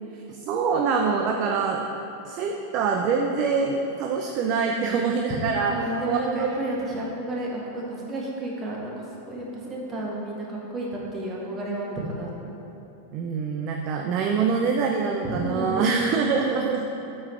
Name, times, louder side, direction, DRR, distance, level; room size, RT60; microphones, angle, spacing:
voice 1, 0.3-1.9 2.2-5.7 6.0-6.6 13.1-16.9, right 5 dB, 40° right, 2 dB, 0.5 m, -25 dB
voice 2, 5.7-8.9 9.3-12.3 15.4-16.2, right 1 dB, 25° right, -3 dB, 1.6 m, -31 dB
8.0 x 5.5 x 4.6 m, 2.9 s
figure-of-eight pair, 90°, 0 cm